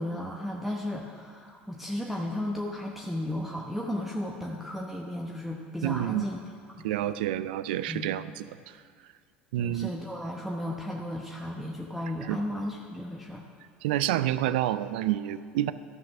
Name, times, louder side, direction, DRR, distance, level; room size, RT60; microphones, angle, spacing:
voice 1, 0.0-6.4 6.7-6.8 7.9-8.1 9.5-13.4, left 1 dB, 5° right, -1 dB, 0.9 m, -34 dB
voice 2, 5.8-6.2 6.8-8.5 9.5-9.9 12.3-12.4 13.8-15.7, right 13 dB, 70° right, 14 dB, 0.3 m, -28 dB
12.5 x 5.9 x 6.0 m, 2.2 s
hypercardioid pair, 75°, 5 cm